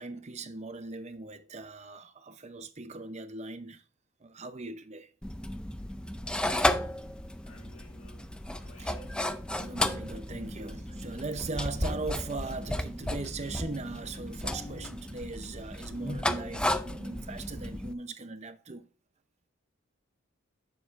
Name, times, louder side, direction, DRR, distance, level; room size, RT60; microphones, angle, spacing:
voice 1, 0.0-3.8 4.2-5.1 8.8-8.9 9.6-18.9, right 3 dB, 35° right, 0.7 m, -39 dB
sound 1, 5.2-17.9, left 1 dB, 5° left, 0.4 m, -34 dB
Buzz, 5.4-16.8, left 1 dB, 25° left, 1.4 m, -51 dB
voice 2, 7.4-9.2, equal, 75° left, 2.6 m, -54 dB
8.7 x 7.1 x 2.5 m
head